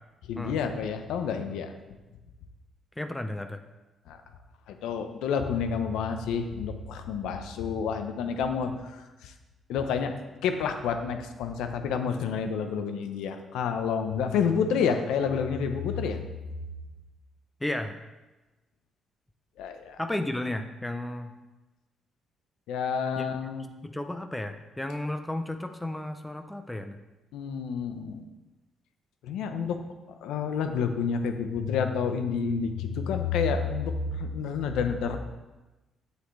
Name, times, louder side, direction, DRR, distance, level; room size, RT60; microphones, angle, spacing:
voice 1, 0.3-1.7 4.1-4.2 4.7-9.3 9.7-16.2 19.6-20.0 22.7-23.6 27.3-28.2 29.2-29.8 30.2-35.2, left 6 dB, 90° left, 7 dB, 0.8 m, -29 dB
voice 2, 3.0-3.6 17.6-18.0 20.0-21.4 23.2-23.3 23.8-27.0, left 1 dB, 10° left, 7 dB, 0.6 m, -33 dB
8.4 x 8.0 x 3.2 m, 1.1 s
cardioid pair, 90°, 0 cm